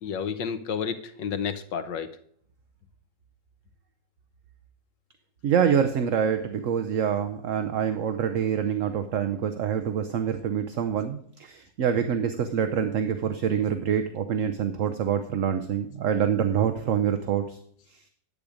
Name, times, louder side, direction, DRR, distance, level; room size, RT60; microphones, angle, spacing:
voice 1, 0.0-2.1, left 7 dB, 90° left, 9 dB, 1.6 m, -31 dB
voice 2, 5.4-17.6, right 8 dB, 55° right, 8 dB, 0.9 m, -26 dB
10.5 x 8.6 x 5.0 m, 0.64 s
omnidirectional pair, 1.9 m